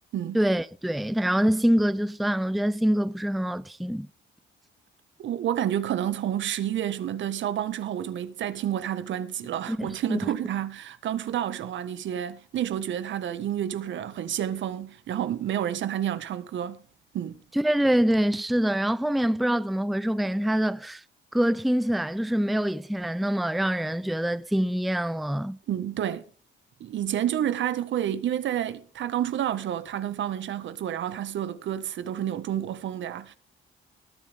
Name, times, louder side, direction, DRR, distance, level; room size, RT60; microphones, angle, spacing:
voice 1, 0.3-4.1 9.7-10.2 17.5-21.0 21.3-25.6, equal, ahead, 0.6 m, -25 dB
voice 2, 5.2-16.8 17.1-17.4 25.7-26.2 26.8-33.3, right 10 dB, 70° right, 1.6 m, -29 dB
20.0 x 8.9 x 3.6 m
cardioid pair, 90°, 20 cm